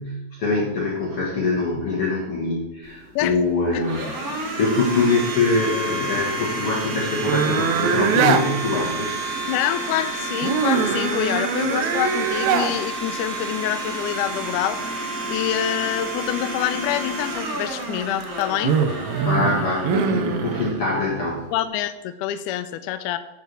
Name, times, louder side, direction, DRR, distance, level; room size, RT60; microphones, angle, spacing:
voice 1, 0.0-4.1 4.4-9.2 19.2-21.4, left 3 dB, 50° left, -4 dB, 2.0 m, -24 dB
Domestic sounds home sounds, 2.8-21.7, right 2 dB, 40° right, 1.3 m, -31 dB
sound 1, 7.3-8.5 10.4-12.7 18.0-20.7, right 6 dB, 80° right, 1.7 m, -22 dB
voice 2, 9.5-18.8 21.5-23.2, left 12 dB, 80° left, 11 dB, 1.9 m, -26 dB
9.3 x 4.8 x 6.7 m, 0.99 s
omnidirectional pair, 4.1 m